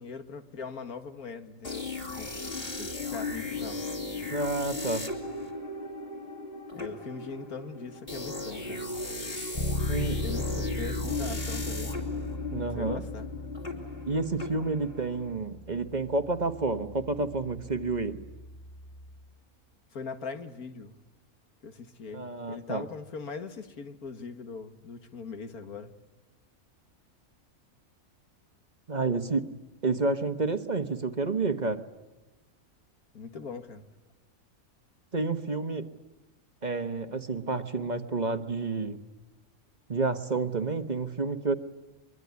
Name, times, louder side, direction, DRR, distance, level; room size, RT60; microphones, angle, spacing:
voice 1, 0.0-1.9 2.2-2.5 2.8-3.8 6.7-8.9 10.2-12.0 12.7-13.3 19.9-21.0 21.6-25.9 33.1-33.9, left 5 dB, 85° left, 8 dB, 2.2 m, -40 dB
sound 1, 1.6-15.4, left 3 dB, 40° left, 3.4 m, -36 dB
voice 2, 4.3-5.1 9.9-10.2 12.5-13.0 14.1-18.2 22.1-22.8 28.9-29.5 29.8-31.8 35.1-35.9 36.6-39.0 39.9-41.5, right 3 dB, 30° right, 9 dB, 1.2 m, -29 dB
Bass guitar, 9.5-19.3, left 1 dB, 25° left, 1.5 m, -37 dB
23.5 x 23.0 x 9.5 m, 1.1 s
omnidirectional pair, 1.5 m